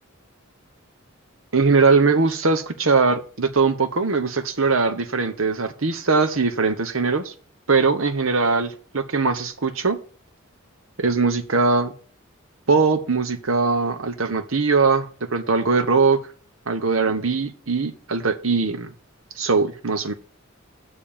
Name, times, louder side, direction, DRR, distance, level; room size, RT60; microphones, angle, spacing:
voice 1, 1.5-7.3 7.7-10.0 11.0-11.9 12.7-16.2 16.7-18.9 19.4-20.1, right 4 dB, 75° right, 1.1 m, -21 dB
7.0 x 6.9 x 7.3 m
head